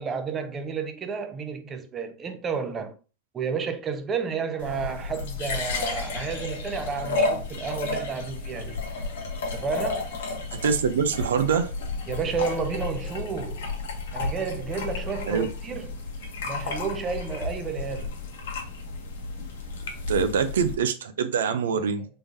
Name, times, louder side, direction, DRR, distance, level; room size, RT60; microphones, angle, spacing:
voice 1, 0.0-2.9 3.3-8.8 9.5-10.1 12.1-13.7 14.1-15.9 16.4-18.1, right 5 dB, 25° right, 0.7 m, -31 dB
sound 1, 4.6-20.7, left 3 dB, 75° left, 1.0 m, -32 dB
voice 2, 10.6-11.7 15.3-15.5 20.1-22.1, right 6 dB, 80° right, 0.5 m, -24 dB
3.6 x 3.3 x 2.6 m
hypercardioid pair, 100°, 0 cm